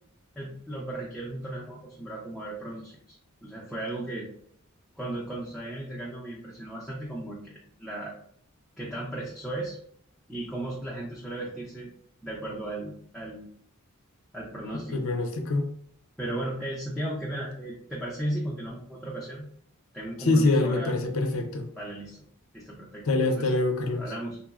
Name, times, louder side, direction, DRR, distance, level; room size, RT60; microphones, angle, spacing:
voice 1, 0.4-3.2 3.4-4.3 5.0-8.1 8.8-9.8 10.3-11.9 12.2-13.5 14.3-15.1 16.2-19.5 19.9-20.9 21.7-22.2 22.5-23.5 24.0-24.4, right 1 dB, ahead, -5 dB, 0.4 m, -36 dB
voice 2, 14.9-15.7 20.3-21.6 23.1-24.0, left 2 dB, 65° left, 3 dB, 0.5 m, -24 dB
3.7 x 2.0 x 2.4 m, 0.65 s
head